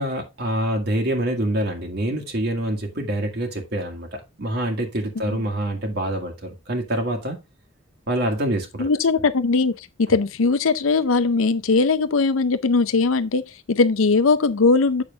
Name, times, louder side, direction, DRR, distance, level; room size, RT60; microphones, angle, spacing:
voice 1, 0.0-7.4 8.1-8.9, right 1 dB, 55° right, 1.7 m, -26 dB
voice 2, 8.8-13.4 13.7-15.0, left 4 dB, 80° left, 0.6 m, -19 dB
7.6 x 6.4 x 3.4 m
head